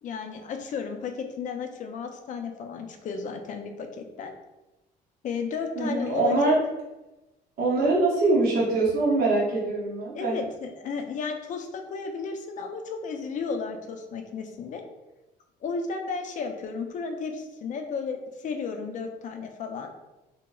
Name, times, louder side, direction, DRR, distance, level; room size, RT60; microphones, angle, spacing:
voice 1, 0.0-4.3 5.2-6.6 10.1-14.8 15.6-19.9, left 5 dB, 50° left, 5 dB, 0.4 m, -33 dB
voice 2, 5.7-6.6 7.6-10.4, right 2 dB, 60° right, -6 dB, 0.9 m, -23 dB
3.0 x 2.8 x 2.2 m, 1.0 s
cardioid pair, 110°, 17 cm